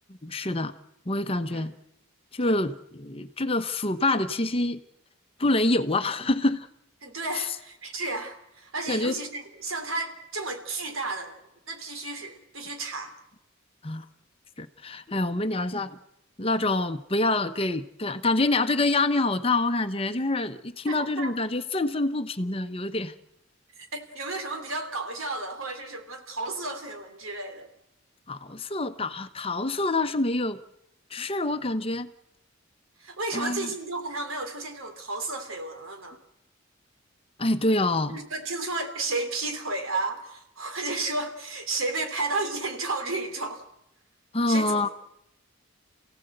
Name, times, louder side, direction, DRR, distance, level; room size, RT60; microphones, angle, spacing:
voice 1, 0.2-0.7 1.1-1.7 2.3-4.8 5.4-6.7 7.3-7.5 8.9-9.1 13.8-14.0 14.6-16.0 16.4-23.1 28.3-30.6 31.1-32.1 33.3-33.7 37.4-38.2 44.3-44.9, left 2 dB, 25° left, 10 dB, 0.9 m, -26 dB
voice 2, 7.0-11.4 11.7-13.1 20.9-21.3 23.8-27.7 33.0-36.2 38.1-43.6 44.5-44.9, right 3 dB, 85° right, 6 dB, 3.3 m, -32 dB
28.5 x 16.5 x 8.0 m, 0.85 s
head